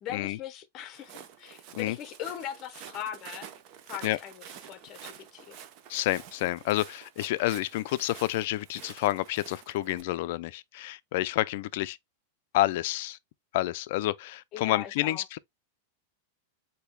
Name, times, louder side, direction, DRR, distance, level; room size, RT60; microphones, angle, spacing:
voice 1, 0.0-3.5 3.9-5.6 14.5-15.2, left 10 dB, 35° left, 0.7 m, -40 dB
Walk footsteps, 0.9-10.0, right 9 dB, 45° right, 0.8 m, -48 dB
voice 2, 5.9-12.0 12.5-13.2 13.5-15.4, left 16 dB, 60° left, 0.4 m, -29 dB
8.1 x 2.7 x 2.2 m
supercardioid pair, 145°, 0 cm